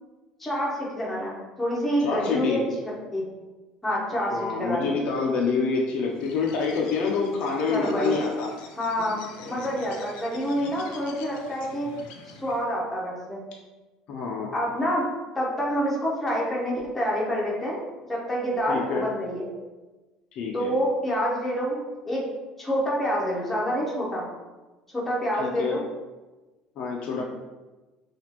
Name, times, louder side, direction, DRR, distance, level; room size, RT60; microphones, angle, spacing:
voice 1, 0.4-3.3 3.8-4.9 7.7-8.2 8.8-11.9 12.3-13.4 14.5-15.0 15.3-17.8 18.1-19.5 20.5-22.3 22.6-24.3 24.9-25.8 27.2-27.3, equal, 5° left, -5 dB, 0.9 m, -27 dB
voice 2, 2.0-2.7 4.3-8.5 14.1-14.5 18.7-19.1 20.3-20.7 25.4-25.8 26.8-27.2, left 4 dB, 45° left, -1 dB, 0.5 m, -27 dB
Bird, 6.1-12.7, left 4 dB, 85° left, 0.7 m, -44 dB
5.9 x 2.4 x 2.9 m, 1.2 s
cardioid pair, 175°, 2 cm